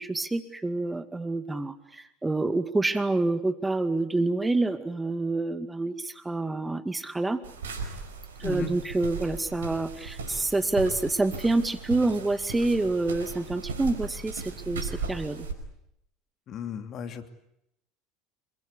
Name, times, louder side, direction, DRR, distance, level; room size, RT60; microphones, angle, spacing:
voice 1, 0.0-7.4 8.4-15.5, right 2 dB, 15° right, 10 dB, 2.2 m, -27 dB
sound 1, 7.4-15.5, right 4 dB, 80° right, 4.9 m, -37 dB
voice 2, 16.5-17.3, left 7 dB, 45° left, 7 dB, 3.0 m, -35 dB
27.0 x 23.5 x 8.5 m, 0.80 s
hypercardioid pair, 75°, 0 cm